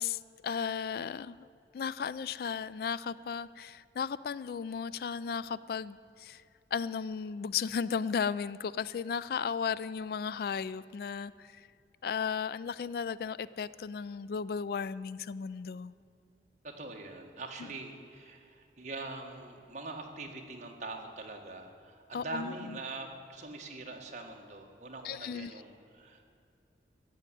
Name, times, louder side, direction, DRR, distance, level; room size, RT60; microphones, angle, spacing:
voice 1, 0.0-1.5 1.7-6.4 6.7-11.7 12.0-15.9 22.1-22.8 25.0-25.5, left 6 dB, 55° left, 17 dB, 0.3 m, -35 dB
voice 2, 16.6-26.2, right 3 dB, 45° right, 1 dB, 1.7 m, -43 dB
14.5 x 7.7 x 9.9 m, 2.5 s
head